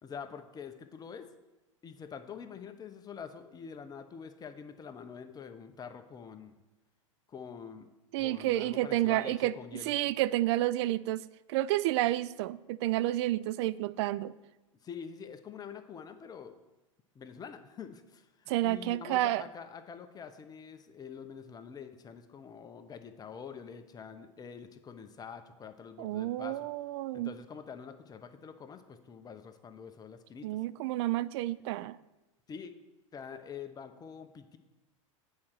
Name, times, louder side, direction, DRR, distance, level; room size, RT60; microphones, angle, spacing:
voice 1, 0.0-1.3 1.8-6.5 7.3-7.9 8.2-9.9 14.8-16.6 17.1-26.7 27.1-30.6 32.5-32.7 33.1-34.6, left 6 dB, 25° left, 8 dB, 0.8 m, -46 dB
voice 2, 8.1-14.3 18.5-19.4 26.0-27.3 30.4-32.0, right 15 dB, 55° right, 17 dB, 0.4 m, -30 dB
8.6 x 4.3 x 6.5 m, 1.1 s
hypercardioid pair, 100°, 17 cm